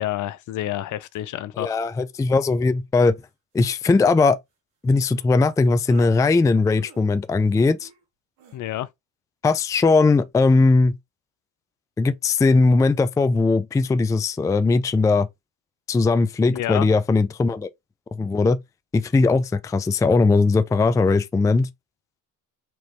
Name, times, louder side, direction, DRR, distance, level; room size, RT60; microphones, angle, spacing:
voice 1, 0.0-1.8 8.5-8.9 16.5-16.9, left 13 dB, 55° left, 0.6 m, -28 dB
voice 2, 1.6-3.2 3.5-4.4 4.8-7.9 9.4-11.0 12.0-15.3 15.9-17.7 18.2-18.6 18.9-21.7, left 3 dB, 10° left, 0.4 m, -19 dB
sound 1, 3.2-3.3 3.6-3.9 5.1-5.3 5.9-6.2 6.8-7.1 7.8-8.0 8.4-8.6, right 4 dB, 85° right, 1.4 m, -48 dB
4.5 x 3.0 x 3.0 m
supercardioid pair, 70°, 37 cm